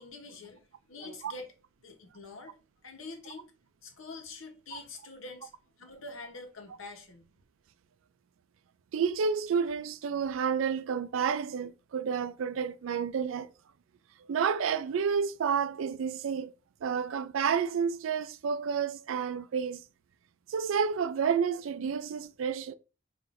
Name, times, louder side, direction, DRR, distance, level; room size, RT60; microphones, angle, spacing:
voice 1, 0.0-1.5 1.8-2.6 2.8-3.5 3.8-5.5 5.8-7.3, left 3 dB, 75° left, 1.0 m, -45 dB
voice 2, 8.9-13.5 14.2-16.5 16.8-19.8 20.5-22.7, right 6 dB, 75° right, 0.4 m, -30 dB
5.6 x 2.5 x 2.5 m
head